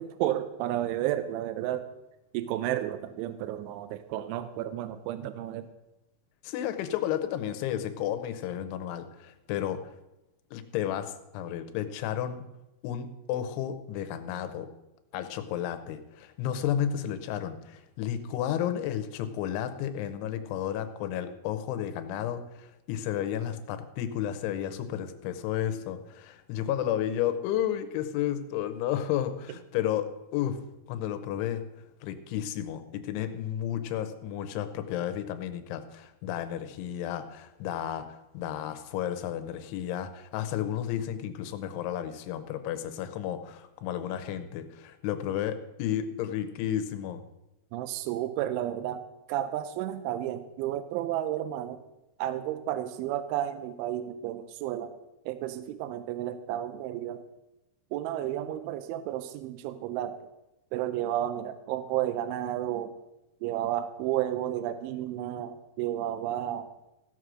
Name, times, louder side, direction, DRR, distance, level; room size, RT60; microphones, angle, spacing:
voice 1, 0.0-1.9 2.3-5.7 47.7-49.0 49.3-51.8 52.2-54.9 55.3-57.2 57.9-60.2 60.7-62.9 63.4-66.7, right 12 dB, 80° right, 11 dB, 2.9 m, -32 dB
voice 2, 6.4-9.8 10.5-12.4 12.8-14.7 15.1-30.6 30.9-31.6 32.0-47.2, left 10 dB, 80° left, 9 dB, 3.1 m, -32 dB
16.0 x 6.5 x 6.2 m, 0.94 s
omnidirectional pair, 5.8 m